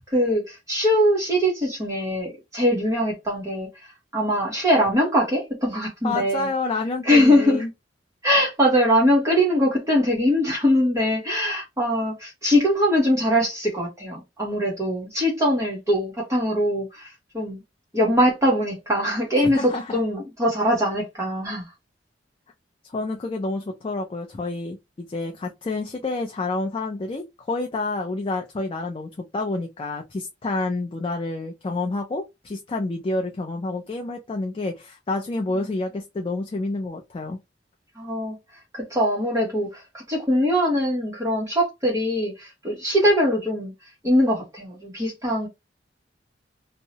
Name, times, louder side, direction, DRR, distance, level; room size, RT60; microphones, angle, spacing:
voice 1, 0.1-3.7 4.1-6.5 7.0-7.6 8.2-17.1 17.3-17.6 17.9-21.6 38.0-38.4 38.7-43.7 44.0-45.5, equal, 15° right, 0.9 m, -22 dB
voice 2, 6.0-7.7 19.4-20.0 22.9-37.4, left 2 dB, 30° left, 0.4 m, -29 dB
2.7 x 2.0 x 2.7 m
head